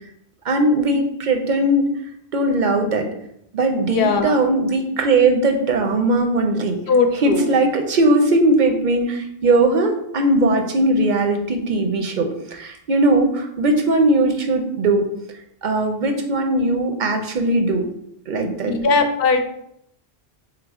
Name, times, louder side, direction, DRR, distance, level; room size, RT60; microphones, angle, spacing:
voice 1, 0.4-1.8 2.3-3.1 3.5-6.8 7.1-15.0 15.6-17.8 18.3-18.8, right 2 dB, 55° right, 4 dB, 0.6 m, -19 dB
voice 2, 3.9-4.4 6.9-7.5 18.7-19.5, left 4 dB, 65° left, 6 dB, 0.8 m, -19 dB
3.7 x 3.3 x 3.5 m, 0.74 s
omnidirectional pair, 1.1 m